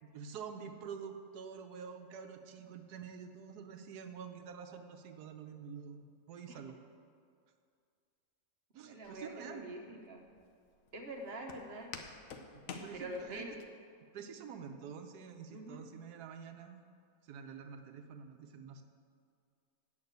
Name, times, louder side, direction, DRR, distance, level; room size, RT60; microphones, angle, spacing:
voice 1, 0.0-6.8 8.7-9.7 12.5-13.6 14.1-16.8 17.2-18.8, right 6 dB, 85° right, 5 dB, 1.3 m, -47 dB
voice 2, 8.8-10.2 10.9-11.9 12.9-13.5 15.5-15.8, right 1 dB, 45° right, 2 dB, 1.1 m, -45 dB
Walk footsteps, 9.0-13.6, left 5 dB, 65° left, 1.1 m, -50 dB
8.6 x 6.5 x 7.9 m, 2.2 s
omnidirectional pair, 1.6 m